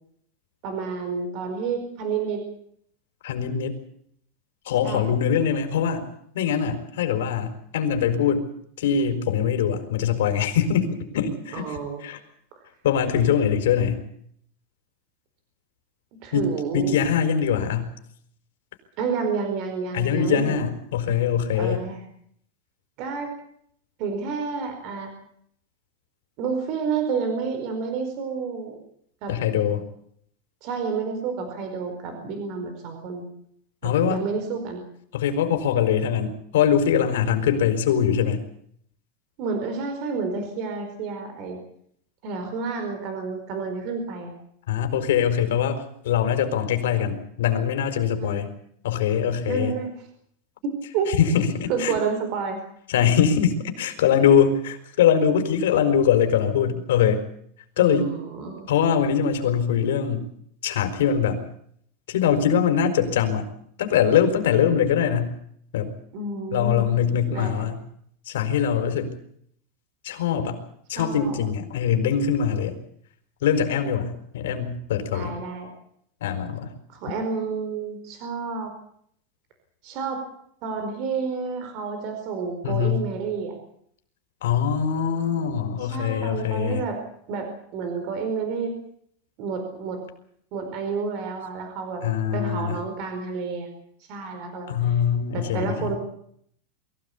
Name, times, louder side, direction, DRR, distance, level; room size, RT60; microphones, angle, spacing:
voice 1, 0.6-2.4 4.8-5.2 11.5-12.0 12.5-12.6 16.2-17.0 19.0-20.6 21.6-22.0 23.0-23.3 24.0-25.1 26.4-28.8 29.2-29.3 30.6-33.3 33.8-34.8 39.4-41.6 42.2-44.3 48.2-48.5 49.5-49.9 50.6-51.1 51.7-52.6 57.8-58.7 66.1-67.7 71.0-71.4 75.1-75.7 76.9-78.7 79.8-80.2 80.6-83.5 85.8-87.0 87.3-88.8 89.4-90.0 90.5-92.0 92.3-93.7 94.1-94.7 95.3-96.0, right 5 dB, 35° right, 6 dB, 4.6 m, -30 dB
voice 2, 3.2-3.7 4.7-6.0 6.3-8.5 8.8-11.8 12.0-12.2 12.8-14.0 16.3-17.9 19.9-21.8 29.3-29.8 33.8-34.2 35.1-38.4 44.7-48.5 48.8-49.7 51.1-52.0 52.9-57.2 57.8-58.1 58.7-60.2 60.6-61.4 62.1-63.5 63.8-65.3 65.7-65.9 66.5-67.8 68.3-69.1 70.0-70.6 70.9-72.8 73.4-75.3 76.2-76.7 82.6-83.0 84.4-86.9 92.0-92.8 94.7-95.9, left 8 dB, 85° left, 7 dB, 4.6 m, -22 dB
24.0 x 16.0 x 8.5 m, 0.66 s
supercardioid pair, 180°, 0 cm